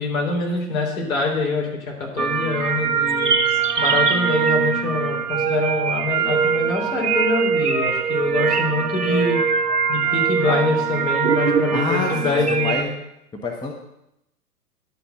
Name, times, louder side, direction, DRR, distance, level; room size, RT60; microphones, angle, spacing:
voice 1, 0.0-3.4 3.8-9.4 9.9-12.9, left 3 dB, 60° left, 0 dB, 3.6 m, -25 dB
sound 1, 2.2-12.8, right 6 dB, 80° right, 1.1 m, -22 dB
voice 2, 11.7-12.9 13.4-13.7, left 3 dB, 10° left, 2 dB, 0.8 m, -26 dB
11.5 x 4.2 x 6.9 m, 0.83 s
figure-of-eight pair, 110°, 46 cm